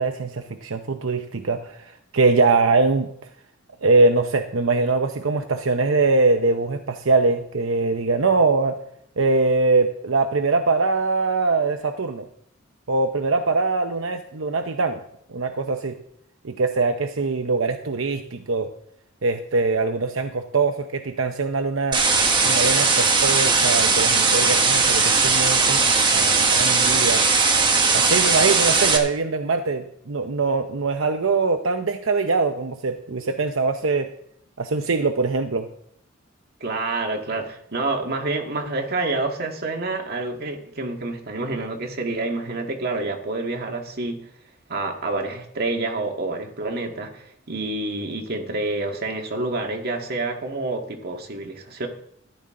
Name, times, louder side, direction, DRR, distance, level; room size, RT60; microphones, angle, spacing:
voice 1, 0.0-3.1 3.8-8.8 9.2-12.3 12.9-15.0 15.3-16.0 16.4-18.7 19.2-22.0 22.4-25.8 26.1-27.2 27.9-34.1 34.6-35.7, right 3 dB, 80° right, 6 dB, 0.8 m, -22 dB
sound 1, 21.9-29.0, right 4 dB, 25° right, 1.4 m, -18 dB
voice 2, 36.6-44.3 44.7-51.9, right 2 dB, 50° right, 2 dB, 1.9 m, -28 dB
13.5 x 12.0 x 3.8 m, 0.69 s
head